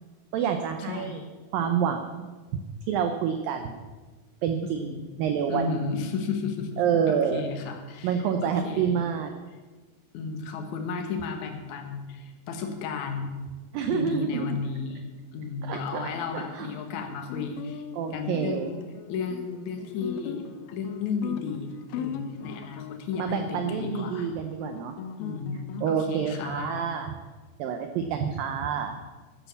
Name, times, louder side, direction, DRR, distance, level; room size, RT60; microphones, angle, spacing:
voice 1, 0.3-1.2 1.5-2.3 2.9-3.8 4.4-5.8 6.8-7.4 8.0-9.3 13.7-14.5 15.6-16.7 18.0-18.7 23.2-25.0 25.8-27.2 27.6-29.0, right 7 dB, 80° right, 6 dB, 2.0 m, -28 dB
voice 2, 0.9-1.2 4.8-5.1 5.5-6.8 7.1-9.0 10.1-13.3 13.9-15.0 15.3-17.8 18.1-18.8 19.1-20.4 20.7-24.3 25.2-26.9, left 5 dB, 60° left, 5 dB, 2.2 m, -33 dB
Guitar, 16.1-26.1, left 7 dB, 75° left, 2.4 m, -39 dB
11.5 x 10.0 x 7.0 m, 1.3 s
omnidirectional pair, 5.0 m